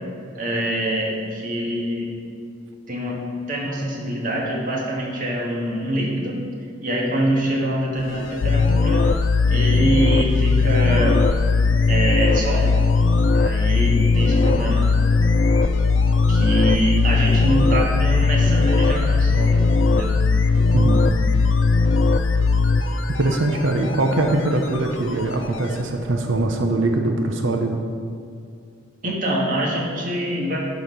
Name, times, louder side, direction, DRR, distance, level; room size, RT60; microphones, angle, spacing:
voice 1, 0.3-2.1 2.9-6.4 6.8-9.1 9.5-11.2 11.9-12.8 13.3-14.9 16.3-20.1 29.0-30.6, right 1 dB, 45° right, -2 dB, 1.6 m, -24 dB
sound 1, 7.9-26.4, equal, 20° left, 1.2 m, -43 dB
sound 2, 8.0-25.8 26.4-26.5, left 4 dB, 85° left, 0.6 m, -36 dB
sound 3, 8.4-22.8, left 3 dB, 45° left, 0.3 m, -18 dB
voice 2, 20.7-21.0 23.2-27.8, right 2 dB, 75° right, 3 dB, 0.7 m, -22 dB
11.5 x 4.2 x 5.5 m, 2.2 s
head